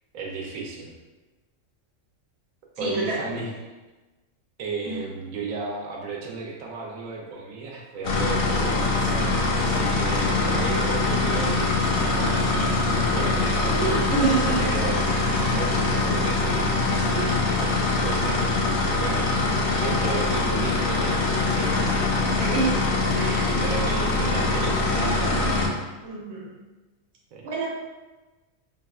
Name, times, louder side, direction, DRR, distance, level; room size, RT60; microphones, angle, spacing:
voice 1, 0.1-0.9 2.8-3.5 4.6-14.0 14.4-15.0 15.3-18.4 19.0-19.3 19.8-22.3 23.6-25.6 27.3-27.5, right 4 dB, 90° right, -1 dB, 1.0 m, -34 dB
voice 2, 2.8-3.2 4.8-5.0 13.6-14.6 22.2-23.5 26.0-26.5 27.4-27.7, right 3 dB, 55° right, -4 dB, 1.0 m, -27 dB
sound 1, 8.0-25.7, left 3 dB, 65° left, 0.6 m, -23 dB
3.9 x 2.3 x 2.3 m, 1.2 s
omnidirectional pair, 1.4 m